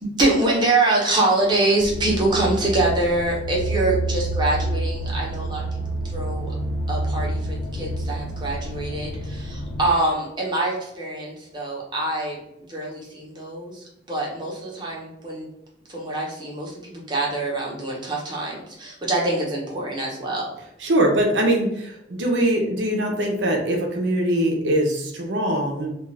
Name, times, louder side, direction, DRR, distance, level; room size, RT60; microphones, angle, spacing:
voice 1, 0.0-6.5 6.9-12.4 12.7-15.5 15.9-20.5, right 2 dB, 25° right, -3 dB, 0.8 m, -25 dB
sound 1, 1.8-9.9, right 1 dB, 80° left, 0.3 m, -28 dB
voice 2, 20.8-25.9, right 1 dB, 80° right, 1 dB, 0.6 m, -22 dB
2.4 x 2.4 x 3.2 m, 0.82 s
head